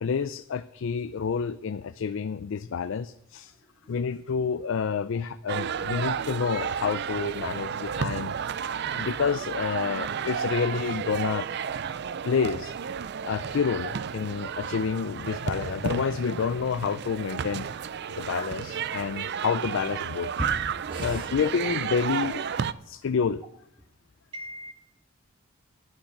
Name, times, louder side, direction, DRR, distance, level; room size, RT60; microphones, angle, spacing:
voice 1, 0.0-3.5 3.9-8.3 8.6-11.5 12.2-12.7 13.2-17.7 18.1-20.3 21.0-22.4 22.9-23.4, left 6 dB, 70° left, 12 dB, 0.4 m, -29 dB
sound 1, 5.5-22.7, right 7 dB, 55° right, 0.4 m, -32 dB
voice 2, 8.7-9.1 20.4-20.5 20.8-21.3 24.3-24.7, equal, 25° right, 2 dB, 1.8 m, -37 dB
12.0 x 11.0 x 5.7 m, 0.75 s
head